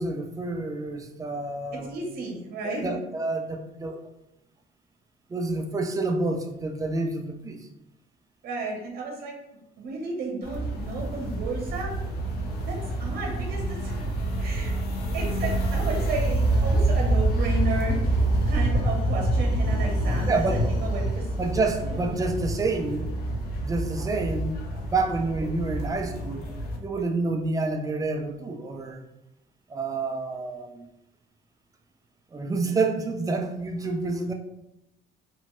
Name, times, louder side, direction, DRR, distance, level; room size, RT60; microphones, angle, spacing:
voice 1, 0.0-2.0 2.6-4.0 5.3-7.7 20.3-20.6 21.4-23.1 23.6-26.5 26.8-29.0 29.7-30.9 32.3-34.3, right 3 dB, 20° right, 4 dB, 0.3 m, -28 dB
voice 2, 1.8-2.9 8.4-9.3 9.8-11.9 12.6-14.0 14.4-14.8 15.1-18.0 18.5-21.3 21.8-22.1, right 2 dB, 60° right, 0 dB, 0.8 m, -33 dB
sound 1, 10.4-26.8, right 1 dB, 65° left, 0.6 m, -27 dB
3.0 x 2.1 x 2.9 m, 0.87 s
cardioid pair, 110°, 17 cm